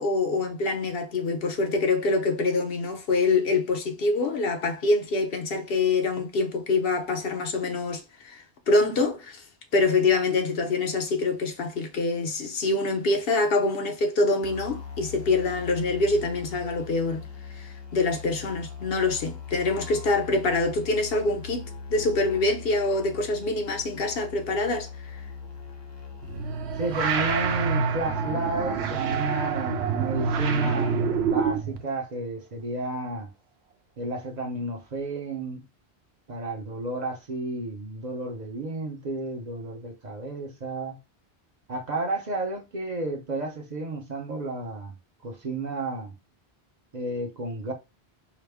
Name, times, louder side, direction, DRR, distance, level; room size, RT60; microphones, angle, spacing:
voice 1, 0.0-9.4 9.7-17.3 17.6-21.6 21.9-24.9, left 3 dB, 65° left, 0.9 m, -25 dB
sound 1, 14.4-26.6, left 6 dB, 30° left, 0.7 m, -40 dB
sound 2, 26.2-31.8, right 5 dB, 80° right, 0.9 m, -26 dB
voice 2, 26.8-33.3 34.0-35.6 36.3-41.0 41.7-45.0 45.2-46.1 46.9-47.7, right 2 dB, 45° right, 0.7 m, -32 dB
4.8 x 2.0 x 3.4 m
omnidirectional pair, 1.1 m